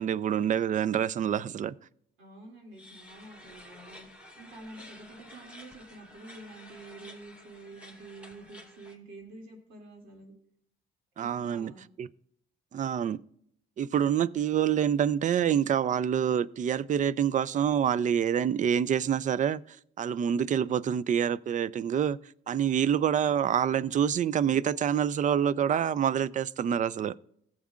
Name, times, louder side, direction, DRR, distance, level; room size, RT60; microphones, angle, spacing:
voice 1, 0.0-1.7 11.2-11.7 12.0-12.1 12.7-13.2 13.8-22.2 22.5-27.1, right 9 dB, 40° right, 0.4 m, -27 dB
voice 2, 2.2-4.1 4.4-10.3 11.2-11.8, right 2 dB, 85° right, 2.5 m, -48 dB
sound 1, 2.7-8.9, left 1 dB, 5° right, 2.5 m, -51 dB
16.5 x 7.4 x 2.4 m
cardioid pair, 90°, 20 cm